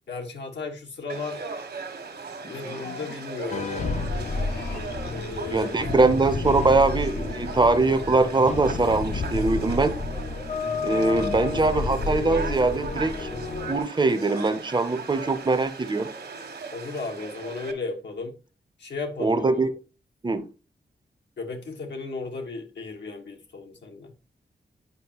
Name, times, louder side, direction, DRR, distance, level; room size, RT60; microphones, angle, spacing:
voice 1, 0.1-1.4 2.4-3.7 5.1-6.1 11.0-11.2 11.4-11.5 16.7-18.4 18.8-19.7 21.4-24.1, left 4 dB, 90° left, 1.5 m, -35 dB
Conversation / Crowd, 1.1-17.7, right 4 dB, 70° right, 1.3 m, -38 dB
sound 1, 2.2-3.5 4.1-5.7, left 4 dB, 65° left, 1.4 m, -44 dB
sound 2, 3.5-13.8, left 4 dB, 45° left, 0.5 m, -30 dB
voice 2, 5.5-10.0 10.8-13.3 13.7-16.1 19.2-19.7 20.2-20.5, right 3 dB, 25° right, 0.6 m, -22 dB
9.5 x 5.0 x 2.9 m
wide cardioid pair, 135°, 18 cm